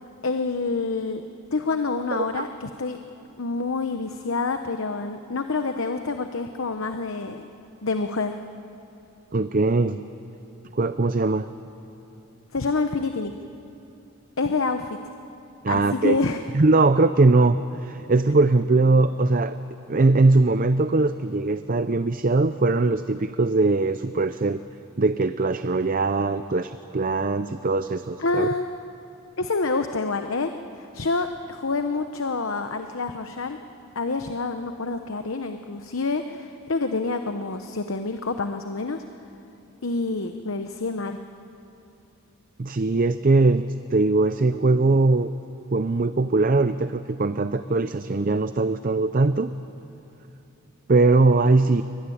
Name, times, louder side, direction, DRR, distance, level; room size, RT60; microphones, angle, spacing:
voice 1, 0.2-1.2 1.5-3.0 3.4-7.5 7.8-8.4 12.5-13.3 14.4-15.0 15.7-16.4 28.2-28.7 29.4-33.6 33.9-39.0 39.8-41.2, left 3 dB, 65° left, 7 dB, 0.9 m, -27 dB
voice 2, 2.1-2.4 9.3-10.0 10.7-11.5 15.6-16.2 16.5-19.6 19.9-24.6 25.0-28.5 42.6-43.6 43.9-45.3 45.7-49.5 50.9-51.8, right 3 dB, 40° right, 11 dB, 0.5 m, -21 dB
23.5 x 22.0 x 10.0 m, 2.8 s
head